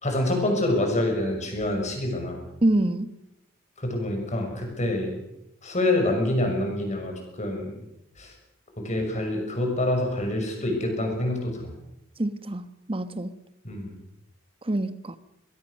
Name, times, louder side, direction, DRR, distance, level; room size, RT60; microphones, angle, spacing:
voice 1, 0.0-2.4 3.8-5.1 5.6-7.8 8.2-8.3 8.8-11.7 13.6-13.9, left 1 dB, 35° left, 3 dB, 6.2 m, -26 dB
voice 2, 2.6-3.1 12.2-13.3 14.6-15.2, right 1 dB, 25° right, 12 dB, 1.2 m, -26 dB
22.5 x 22.0 x 6.5 m, 0.89 s
head